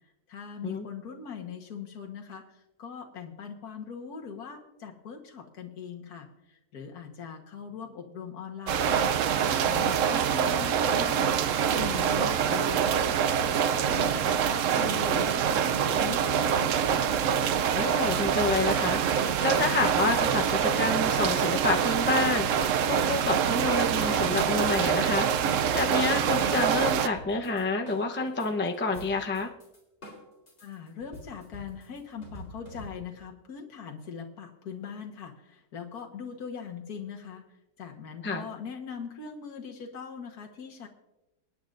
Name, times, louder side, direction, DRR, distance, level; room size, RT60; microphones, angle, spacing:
voice 1, 0.3-11.4 11.6-13.1 13.5-16.8 30.6-37.4 37.8-40.9, left 7 dB, 65° left, 2 dB, 1.8 m, -41 dB
sound 1, 8.7-27.1, right 8 dB, 65° right, 0.8 m, -25 dB
sound 2, 15.8-19.8 20.2-21.0 21.3-24.2 24.6-33.3, equal, 30° left, 4.1 m, -48 dB
voice 2, 17.7-29.5 38.2-38.5, left 3 dB, 10° left, 3 dB, 0.5 m, -29 dB
27.5 x 9.4 x 2.6 m, 0.93 s
omnidirectional pair, 1.8 m